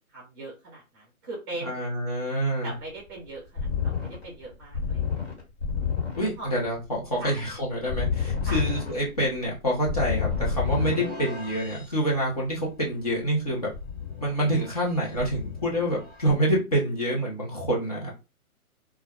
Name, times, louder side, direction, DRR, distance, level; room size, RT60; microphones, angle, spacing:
voice 1, 0.1-1.8 2.6-5.3 6.4-6.5 7.2-7.3 8.4-8.6, right 2 dB, 15° right, -2 dB, 0.8 m, -40 dB
voice 2, 1.6-2.7 6.1-13.7 14.2-18.1, right 1 dB, 25° left, -3 dB, 0.5 m, -27 dB
sound 1, 3.0-11.8 13.7-14.9 15.2-16.3, left 6 dB, 45° left, 1.3 m, -30 dB
2.2 x 2.0 x 3.3 m, 0.28 s
hypercardioid pair, 155°, 44 cm